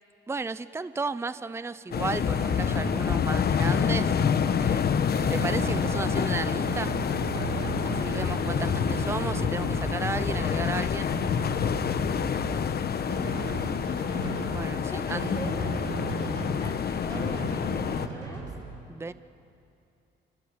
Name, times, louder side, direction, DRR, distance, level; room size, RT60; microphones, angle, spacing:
voice 1, 0.3-4.2 4.6-4.9 5.3-6.9 7.8-11.1 14.5-15.6 18.9-19.1, right 4 dB, 15° right, 14 dB, 0.6 m, -34 dB
sound 1, 1.9-18.1, left 7 dB, 50° left, 1.1 m, -27 dB
Drum, 2.2-18.6, right 5 dB, 85° right, 6.8 m, -36 dB
voice 2, 7.9-8.2 12.5-12.8 14.8-15.8 16.6-18.5, left 1 dB, 15° left, -1 dB, 4.9 m, -42 dB
27.5 x 24.0 x 8.8 m, 2.7 s
cardioid pair, 90°, 20 cm